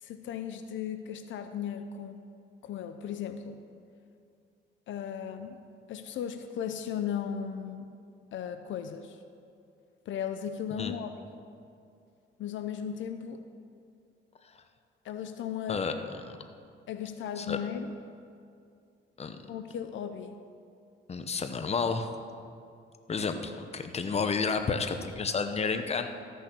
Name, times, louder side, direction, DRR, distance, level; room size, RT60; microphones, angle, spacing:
voice 1, 0.0-2.2 2.6-3.6 4.9-5.6 5.9-7.9 8.3-9.2 10.1-11.1 12.4-13.4 15.0-15.8 16.9-17.9 19.5-20.4, left 8 dB, 75° left, 8 dB, 0.6 m, -36 dB
voice 2, 21.1-22.1 23.1-26.1, left 5 dB, 30° left, 8 dB, 0.8 m, -31 dB
13.5 x 6.5 x 6.0 m, 2.4 s
cardioid pair, 90°, 20 cm